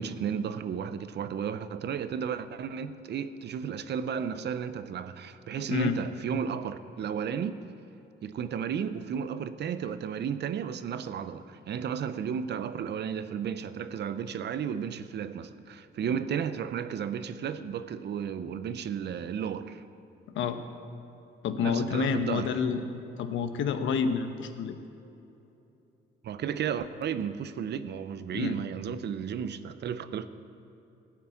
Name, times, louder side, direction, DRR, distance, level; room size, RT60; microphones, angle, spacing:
voice 1, 0.0-7.6 8.2-19.8 21.6-22.5 26.2-30.3, right 7 dB, 60° right, 0.6 m, -33 dB
voice 2, 21.4-22.8 23.2-24.8 28.3-28.5, left 6 dB, 75° left, 1.0 m, -28 dB
16.0 x 6.0 x 8.4 m
cardioid pair, 90°, 20 cm